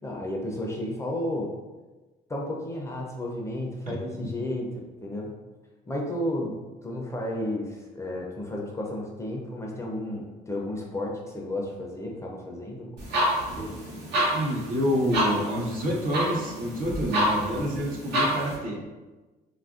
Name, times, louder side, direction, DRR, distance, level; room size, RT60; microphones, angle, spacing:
voice 1, 0.0-1.5 2.3-5.4 5.9-13.0, left 1 dB, 15° left, -1 dB, 0.4 m, -32 dB
sound 1, 13.0-18.6, equal, 85° right, 0.9 m, -28 dB
voice 2, 14.3-18.8, equal, 55° right, -1 dB, 0.7 m, -28 dB
2.9 x 2.4 x 2.4 m, 1.2 s
cardioid pair, 110°, 17 cm